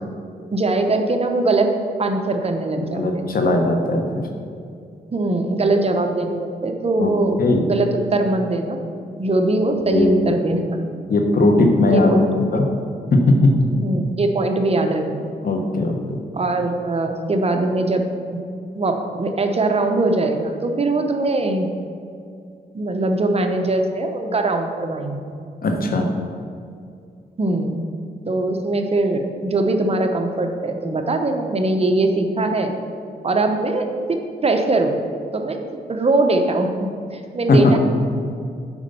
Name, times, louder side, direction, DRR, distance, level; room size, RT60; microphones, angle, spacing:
voice 1, 0.5-1.7 2.0-3.2 5.1-8.8 9.2-10.8 11.9-12.3 13.7-15.3 16.3-18.0 18.7-21.7 22.7-25.2 27.4-27.8 28.3-32.7 33.2-35.0 35.3-35.6 35.9-37.8, right 2 dB, 35° right, 5 dB, 0.8 m, -21 dB
voice 2, 2.8-4.1 7.0-7.1 7.4-7.6 9.7-10.4 11.1-12.7 13.1-13.5 15.4-16.2 25.6-26.1 37.5-37.8, left 2 dB, 60° left, 3 dB, 1.1 m, -18 dB
7.1 x 5.3 x 5.5 m, 2.4 s
cardioid pair, 80°, 17 cm